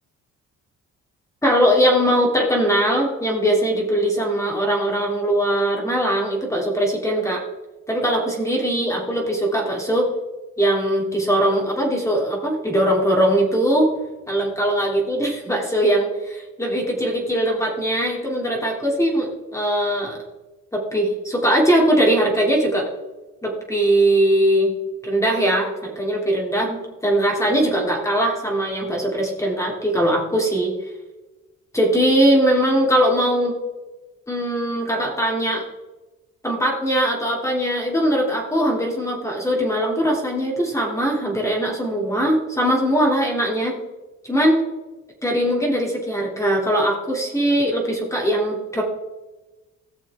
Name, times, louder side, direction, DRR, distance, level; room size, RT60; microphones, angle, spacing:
voice 1, 1.4-7.4 7.9-10.1 10.6-13.9 14.3-20.2 20.7-22.9 23.4-24.7 25.0-26.8 27.0-30.7 31.7-33.5 34.3-35.6 36.4-43.7 44.2-44.6 45.2-48.8, right 1 dB, 10° left, -1 dB, 3.2 m, -20 dB
17.0 x 6.7 x 3.7 m, 1.1 s
cardioid pair, 90°, 30 cm